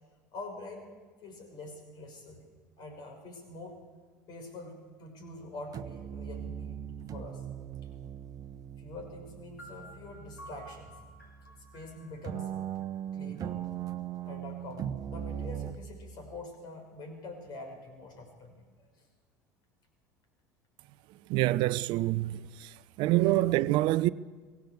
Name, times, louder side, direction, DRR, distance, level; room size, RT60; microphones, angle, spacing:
voice 1, 0.3-1.0 1.2-2.4 2.8-3.8 4.3-6.8 7.1-7.4 8.8-10.9 11.7-12.5 13.1-13.6 14.2-18.6 23.2-23.3, left 2 dB, 50° left, 5.9 m, -45 dB
sound 1, 5.2-5.5 5.7-12.0 12.2-15.8, right 10 dB, 40° right, 1.1 m, -40 dB
sound 2, 9.6-13.4, equal, 90° left, 5.1 m, -53 dB
voice 2, 21.3-22.7 23.0-24.1, right 17 dB, 55° right, 0.6 m, -26 dB
23.5 x 17.0 x 8.1 m
hypercardioid pair, 70°, 9 cm